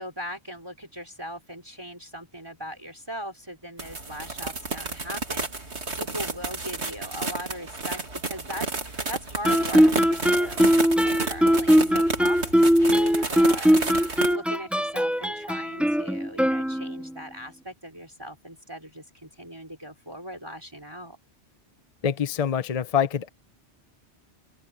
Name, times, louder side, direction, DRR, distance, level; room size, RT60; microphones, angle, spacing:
voice 1, 0.0-21.2, equal, 20° right, 5.0 m, -39 dB
sound 1, 3.8-14.3, right 3 dB, 80° right, 2.9 m, -32 dB
Guitar, 9.4-17.2, equal, ahead, 0.7 m, -21 dB
voice 2, 22.0-23.3, left 8 dB, 40° left, 0.8 m, -25 dB
open air
omnidirectional pair, 1.1 m